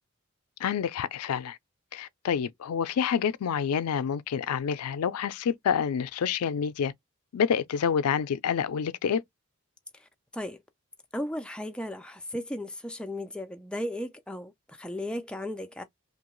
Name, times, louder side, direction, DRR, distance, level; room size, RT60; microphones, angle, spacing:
voice 1, 0.6-1.6 1.9-6.9 7.3-9.2, left 7 dB, 85° left, 0.4 m, -28 dB
voice 2, 11.1-15.8, left 1 dB, 5° left, 0.3 m, -35 dB
2.8 x 2.2 x 3.0 m
head